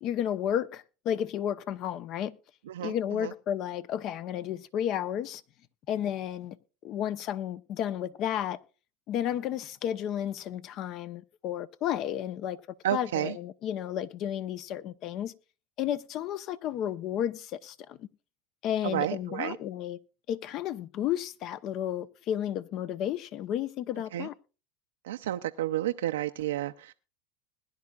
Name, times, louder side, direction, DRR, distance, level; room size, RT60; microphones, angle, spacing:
voice 1, 0.0-2.3 2.8-5.4 5.9-6.6 6.8-8.6 9.1-12.6 12.9-15.3 15.8-18.1 18.6-20.0 20.3-24.3, left 10 dB, 50° left, 0.8 m, -32 dB
voice 2, 2.7-3.3 12.8-13.4 18.8-19.6 24.1-24.3 25.0-26.9, right 13 dB, 90° right, 0.5 m, -31 dB
21.0 x 10.5 x 2.4 m
supercardioid pair, 105°, 0 cm